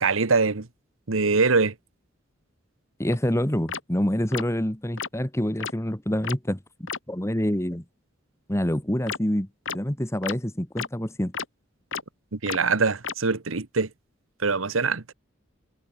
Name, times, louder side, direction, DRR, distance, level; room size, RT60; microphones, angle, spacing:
voice 1, 0.0-0.7 1.1-1.7 12.3-13.9 14.4-15.0, right 4 dB, 80° right, 1.2 m, -23 dB
voice 2, 3.0-7.8 8.5-9.5 9.7-11.3, equal, 15° left, 1.6 m, -27 dB
sound 1, 3.1-3.2 3.7-3.8 4.3-4.4 5.0-5.1 5.6-5.7 6.2-6.3 6.9-7.0 9.1-9.2 9.6-9.8 10.2-10.3 10.8-10.9 11.3-11.4 11.9-12.0 12.5-12.6 13.0-13.1, left 6 dB, 70° left, 3.3 m, -31 dB
head